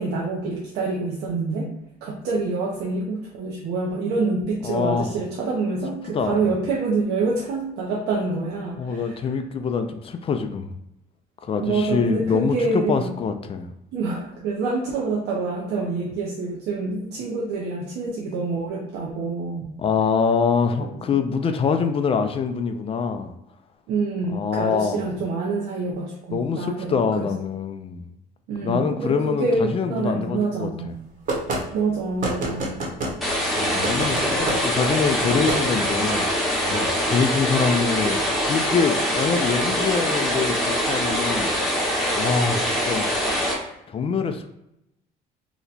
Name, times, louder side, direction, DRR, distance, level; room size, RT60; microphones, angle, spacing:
voice 1, 0.0-1.7 2.0-9.3 11.6-13.1 13.9-19.7 20.8-21.2 23.9-27.3 28.5-31.0 31.7-32.9, right 3 dB, 80° right, -3 dB, 0.6 m, -26 dB
voice 2, 4.6-5.1 6.1-6.6 8.8-10.7 11.4-13.7 19.8-23.3 24.3-25.1 26.3-28.1 28.6-30.7 33.6-36.3 36.6-41.5 42.2-43.1 43.9-44.5, left 5 dB, 35° left, 7 dB, 0.4 m, -24 dB
sound 1, 31.3-31.6 32.2-33.2 33.8-34.6 35.3-35.6, right 2 dB, 50° right, 1.0 m, -26 dB
sound 2, 33.2-43.5, equal, ahead, 0.9 m, -23 dB
2.9 x 2.1 x 3.9 m, 0.84 s
cardioid pair, 110°, 17 cm